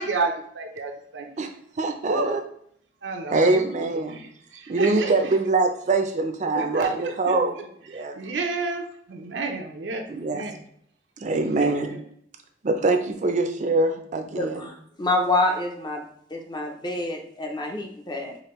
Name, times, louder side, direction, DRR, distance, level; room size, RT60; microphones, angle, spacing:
voice 1, 0.0-1.3 2.1-2.3 3.0-3.4 3.8-5.3 6.5-7.6 7.9-10.5 11.3-12.0, right 3 dB, 80° right, 3 dB, 0.6 m, -31 dB
voice 2, 1.8-2.4 3.3-4.2 4.7-7.6 7.9-8.2 10.1-10.4 11.2-11.9 12.6-14.6, right 3 dB, 45° right, 6 dB, 0.5 m, -23 dB
voice 3, 14.4-16.0 16.3-18.4, left 2 dB, 25° left, 2 dB, 0.5 m, -27 dB
5.0 x 2.6 x 3.0 m, 0.66 s
head